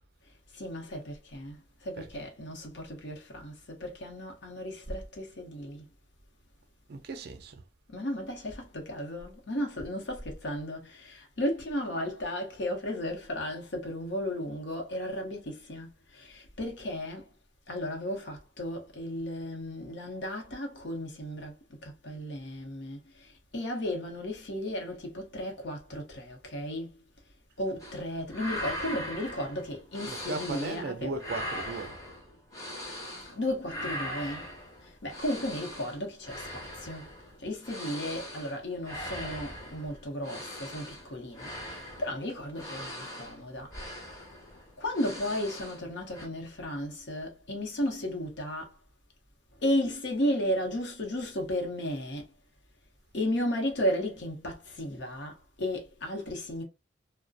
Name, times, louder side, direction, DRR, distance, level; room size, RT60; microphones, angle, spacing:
voice 1, 0.5-5.9 7.9-17.3 17.7-26.9 27.6-31.2 33.2-34.6 34.8-37.1 37.4-43.7 44.8-48.8 49.6-52.3 53.1-56.6, left 1 dB, 65° left, 0.8 m, -34 dB
voice 2, 1.9-2.3 6.9-7.6 30.1-32.0, right 3 dB, 55° right, 0.4 m, -37 dB
sound 1, 27.8-28.0 28.3-30.9 31.1-33.4 33.6-45.9 46.1-46.3, equal, 15° left, 0.6 m, -40 dB
2.4 x 2.1 x 2.5 m
head